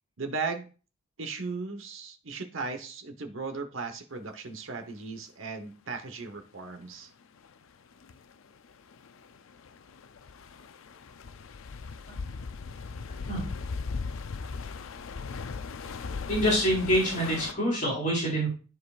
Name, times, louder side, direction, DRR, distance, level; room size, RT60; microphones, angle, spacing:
voice 1, 0.2-0.7 1.2-7.1, right 4 dB, 70° right, 7 dB, 1.2 m, -36 dB
sound 1, 7.4-7.5 8.0-8.2 8.6-17.5, left 4 dB, 75° left, 0.5 m, -38 dB
voice 2, 16.3-18.5, equal, 40° left, -6 dB, 4.3 m, -26 dB
13.5 x 4.6 x 2.5 m, 0.36 s
head